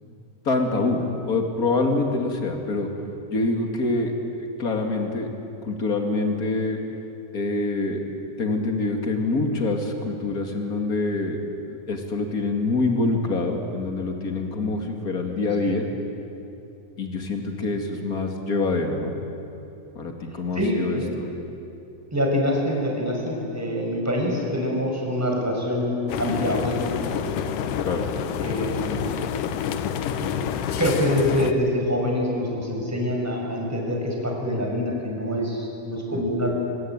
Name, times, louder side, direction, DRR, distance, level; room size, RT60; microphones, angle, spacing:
voice 1, 0.4-2.9 3.3-4.1 4.4-5.3 5.6-6.8 7.3-8.0 8.4-11.4 11.7-15.8 17.0-19.2 19.9-21.3 27.8-28.0 36.1-36.2, left 3 dB, 30° left, 3 dB, 1.8 m, -25 dB
voice 2, 15.4-15.7 20.5-21.1 22.1-27.3 28.4-29.0 30.2-30.3 30.8-36.5, left 1 dB, 5° right, -1 dB, 5.0 m, -25 dB
sound 1, 26.1-31.5, left 8 dB, 75° left, 2.0 m, -28 dB
25.5 x 25.0 x 9.0 m, 2.8 s
omnidirectional pair, 5.2 m